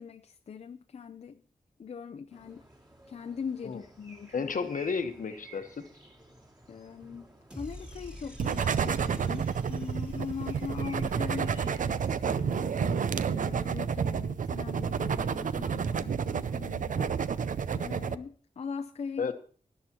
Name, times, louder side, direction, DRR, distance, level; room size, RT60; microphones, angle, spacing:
voice 1, 0.0-1.4 1.8-2.6 3.1-4.6 6.7-17.4 17.7-19.3, left 6 dB, 50° left, 6 dB, 0.5 m, -41 dB
sound 1, 2.3-12.1, right 1 dB, 30° right, 2.5 m, -54 dB
voice 2, 4.3-5.8 19.2-19.3, left 5 dB, 75° left, 8 dB, 1.1 m, -32 dB
sound 2, 7.5-11.8, equal, 5° right, 1.8 m, -48 dB
sound 3, 8.4-18.2, right 6 dB, 70° right, 0.5 m, -30 dB
19.5 x 11.0 x 2.9 m, 0.43 s
wide cardioid pair, 145°, 14 cm